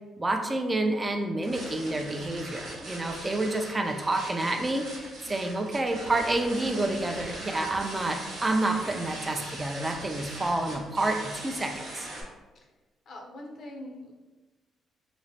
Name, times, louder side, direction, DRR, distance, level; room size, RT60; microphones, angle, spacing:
voice 1, 0.2-12.1, right 2 dB, 20° right, 4 dB, 0.4 m, -29 dB
sound 1, 1.4-12.2, right 1 dB, 80° right, 0.9 m, -41 dB
voice 2, 13.1-14.1, left 1 dB, 60° left, 1 dB, 0.5 m, -42 dB
3.0 x 2.0 x 2.7 m, 1.2 s
cardioid pair, 90°, 0 cm